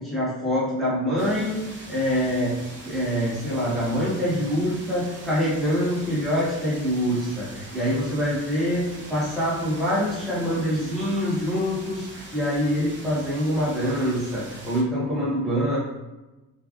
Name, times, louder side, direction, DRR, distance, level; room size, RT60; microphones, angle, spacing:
voice 1, 0.0-1.6 1.9-2.5 2.9-15.8, equal, ahead, -9 dB, 1.2 m, -25 dB
sound 1, 1.2-14.8, right 2 dB, 40° right, 0.7 m, -42 dB
3.3 x 2.4 x 2.4 m, 1.1 s
cardioid pair, 90°, 30 cm